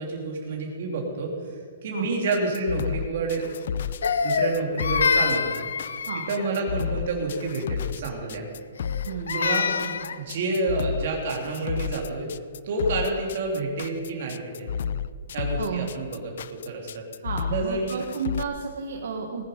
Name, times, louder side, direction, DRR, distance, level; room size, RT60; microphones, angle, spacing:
voice 1, 0.0-3.5 4.2-5.5 6.1-8.4 9.3-9.8 10.1-12.3 12.6-14.7 15.3-17.0 17.4-18.0, right 3 dB, 40° right, 0 dB, 3.0 m, -29 dB
sound 1, 2.3-18.4, left 8 dB, 45° left, 0.4 m, -32 dB
Crying sobbing, 4.0-6.5 8.8-10.2, left 5 dB, 85° left, 0.8 m, -26 dB
voice 2, 9.0-9.5 9.8-9.9 15.6-15.9 17.2-19.4, right 5 dB, 55° right, 2 dB, 1.3 m, -32 dB
19.0 x 10.0 x 5.2 m, 2.2 s
hypercardioid pair, 180°, 0 cm